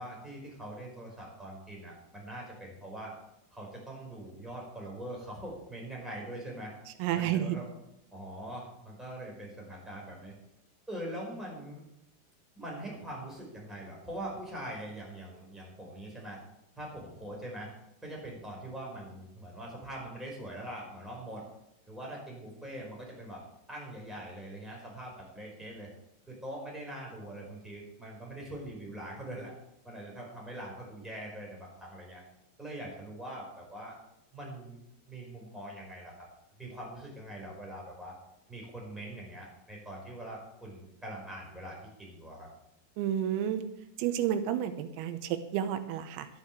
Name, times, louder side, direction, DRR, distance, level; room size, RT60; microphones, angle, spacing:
voice 1, 0.0-3.1 3.5-6.7 7.1-7.7 8.1-10.3 10.9-11.8 12.5-16.4 16.8-17.7 18.0-21.4 21.9-23.4 23.7-25.9 26.3-29.5 29.8-32.2 32.6-34.0 34.3-34.8 35.1-36.1 36.6-38.1 38.5-42.5, right 1 dB, ahead, -3 dB, 4.4 m, -43 dB
voice 2, 7.0-7.6 43.0-43.6 44.0-46.3, right 10 dB, 90° right, 10 dB, 3.6 m, -30 dB
11.5 x 9.0 x 7.9 m, 0.84 s
omnidirectional pair, 6.0 m